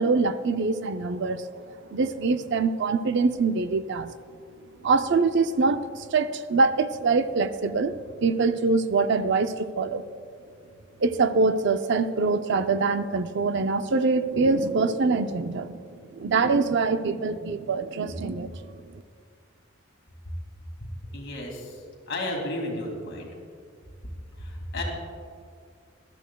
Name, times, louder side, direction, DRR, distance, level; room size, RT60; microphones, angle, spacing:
voice 1, 0.0-1.5 1.9-4.1 4.8-7.9 8.2-10.0 11.0-18.6 18.9-19.0, right 4 dB, 60° right, 10 dB, 0.5 m, -24 dB
voice 2, 21.1-21.8 22.1-23.3 24.4-24.8, left 1 dB, 65° left, 0 dB, 2.4 m, -32 dB
20.5 x 12.5 x 2.3 m, 2.2 s
head